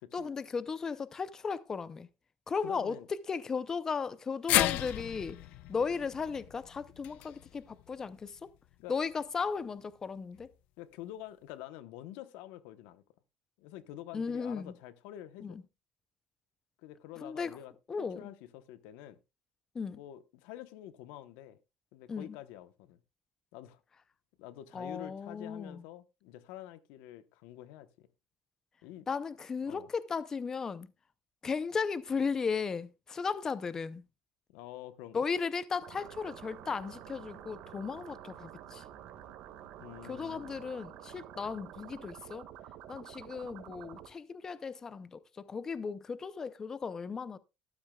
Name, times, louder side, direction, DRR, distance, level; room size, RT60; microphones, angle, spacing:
voice 1, 0.1-2.1 2.5-5.4 5.7-8.5 8.9-10.5 14.1-14.7 15.4-15.6 17.2-17.5 17.9-18.3 19.7-20.0 22.1-22.4 24.7-25.8 29.1-30.9 31.4-34.0 35.1-38.8 40.0-42.4 42.9-47.4, left 5 dB, 20° left, 0.5 m, -36 dB
voice 2, 2.6-3.1 5.7-5.9 8.8-8.9 10.8-13.0 13.6-15.6 16.8-19.2 19.9-21.6 21.9-23.0 23.5-23.8 24.4-28.1 28.8-29.1 29.7-29.9 34.5-35.3 39.8-40.6, left 13 dB, 90° left, 0.9 m, -47 dB
sound 1, 4.5-8.7 9.1-9.2 10.4-10.5, left 15 dB, 65° left, 0.6 m, -34 dB
sound 2, 35.8-44.1, right 11 dB, 65° right, 1.7 m, -49 dB
13.0 x 12.0 x 2.3 m
cardioid pair, 150°, 2 cm